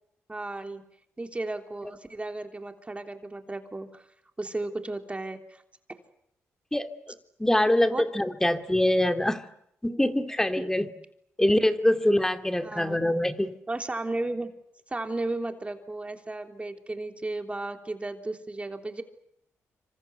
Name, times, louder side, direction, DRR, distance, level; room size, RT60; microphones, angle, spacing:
voice 1, 0.3-0.8 1.2-4.0 4.4-5.6 7.9-8.0 9.8-10.0 10.6-10.7 12.6-13.0 13.7-14.5 14.9-19.0, right 2 dB, 20° right, 5 dB, 3.3 m, -34 dB
voice 2, 7.4-9.4 9.8-10.9 11.4-13.5, left 1 dB, 10° left, 7 dB, 2.3 m, -24 dB
26.0 x 25.5 x 8.1 m, 0.76 s
cardioid pair, 65°, 5 cm